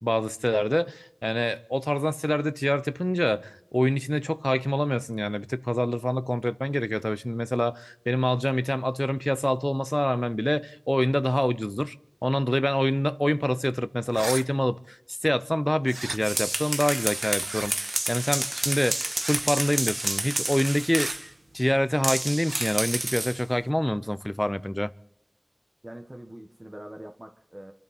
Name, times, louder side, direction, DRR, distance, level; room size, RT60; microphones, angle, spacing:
voice 1, 0.0-11.9 12.2-15.0 15.2-24.9, equal, 15° left, 0.7 m, -26 dB
sound 1, 14.1-14.4 15.8-16.2 17.4-17.7 19.2-19.5 20.9-21.2 22.5-22.7, right 2 dB, 80° right, 0.5 m, -34 dB
sound 2, 16.0-21.3 22.0-23.4, right 1 dB, 60° right, 1.4 m, -30 dB
voice 2, 25.8-27.7, right 1 dB, 30° right, 1.3 m, -43 dB
27.0 x 12.5 x 4.3 m
wide cardioid pair, 50°, 0 cm